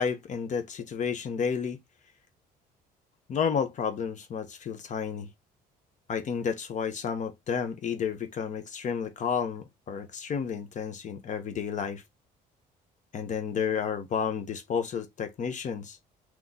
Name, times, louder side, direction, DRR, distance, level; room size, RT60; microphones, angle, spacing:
voice 1, 0.0-1.8 3.3-5.3 6.1-12.0 13.1-16.0, left 7 dB, 45° left, 0.9 m, -31 dB
3.8 x 3.0 x 3.9 m
cardioid pair, 110°, 17 cm